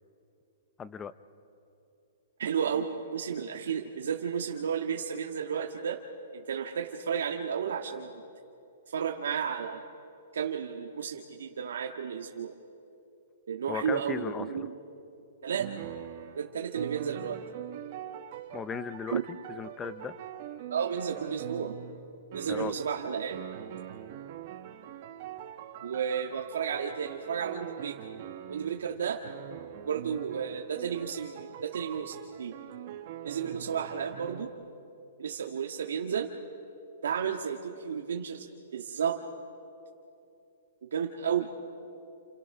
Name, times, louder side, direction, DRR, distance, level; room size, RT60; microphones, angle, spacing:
voice 1, 0.8-1.1 13.7-14.7 18.5-19.2 19.5-20.1 22.5-22.7, left 6 dB, 10° left, 14 dB, 0.5 m, -36 dB
voice 2, 2.4-6.0 6.3-8.2 8.9-9.8 10.3-12.5 13.5-14.7 15.4-15.7 16.3-17.4 19.1-19.2 20.7-21.8 22.3-23.4 25.8-28.0 28.5-29.2 29.8-32.5 33.2-34.5 35.2-36.3 37.0-39.2 40.8-41.5, right 7 dB, 80° right, 1 dB, 1.6 m, -32 dB
sound 1, 15.6-22.1 22.3-23.0 23.3-28.9 29.2-34.5, right 11 dB, 35° right, 1.5 m, -43 dB
29.5 x 29.5 x 6.0 m, 2.7 s
hypercardioid pair, 180°, 0 cm